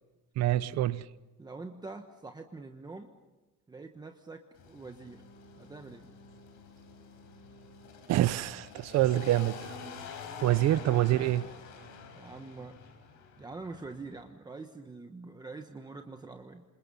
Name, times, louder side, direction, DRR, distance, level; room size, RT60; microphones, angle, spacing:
voice 1, 0.4-1.0 8.1-9.8 10.4-11.5, right 14 dB, 60° right, 0.7 m, -26 dB
voice 2, 1.4-3.1 3.7-5.2 5.6-6.1 10.4-10.7 12.1-12.8 13.4-16.6, right 3 dB, 15° right, 1.2 m, -45 dB
sound 1, 4.5-14.2, left 5 dB, 80° left, 5.5 m, -47 dB
28.0 x 27.0 x 5.5 m
cardioid pair, 165°, 30 cm